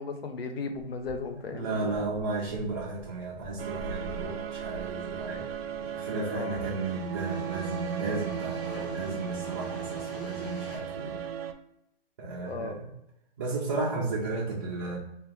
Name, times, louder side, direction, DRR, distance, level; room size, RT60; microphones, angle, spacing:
voice 1, 0.0-1.9 6.3-6.7 12.4-12.8, left 4 dB, 80° left, 6 dB, 0.7 m, -36 dB
sound 1, 0.7-10.8, equal, 60° left, 1.3 m, -47 dB
voice 2, 1.5-5.5 5.8-11.2 12.2-12.9 13.4-15.0, right 3 dB, 25° right, -6 dB, 0.4 m, -34 dB
sound 2, 3.6-11.5, right 9 dB, 85° right, 0.5 m, -36 dB
2.8 x 2.2 x 3.4 m, 0.81 s
hypercardioid pair, 150°, 30 cm